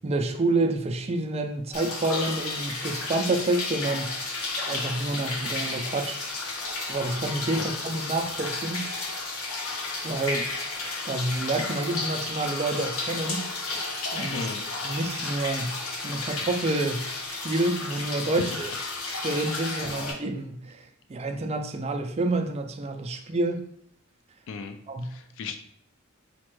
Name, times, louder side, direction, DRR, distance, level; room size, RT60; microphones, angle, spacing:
voice 1, 0.0-4.2 4.7-6.2 6.9-8.9 10.0-10.5 11.1-13.4 14.1-14.5 14.8-18.7 19.2-20.8 21.1-23.6 24.9-25.1, right 2 dB, 30° right, 0.4 m, -28 dB
sound 1, 1.7-20.1, left 3 dB, 90° left, 0.8 m, -32 dB
voice 2, 14.3-14.6 18.4-18.5 24.5-24.8 25.0-25.6, left 5 dB, 65° left, 0.3 m, -35 dB
5.0 x 2.2 x 3.0 m
head